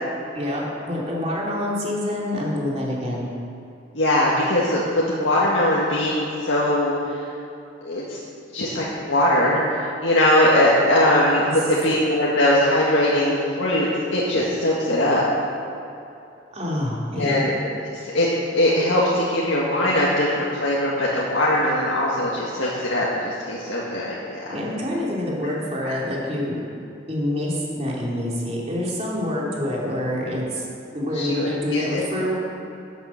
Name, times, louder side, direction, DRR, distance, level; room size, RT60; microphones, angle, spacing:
voice 1, 0.3-3.3 11.5-11.6 16.5-17.5 24.5-26.6 27.1-32.4, left 1 dB, 35° right, -4 dB, 3.0 m, -26 dB
voice 2, 3.9-7.2 7.8-8.2 8.5-15.3 17.2-17.5 18.0-18.3 18.5-24.5 25.8-25.9 31.1-32.0, left 1 dB, 80° left, -6 dB, 1.8 m, -21 dB
13.0 x 9.2 x 5.8 m, 2.7 s
head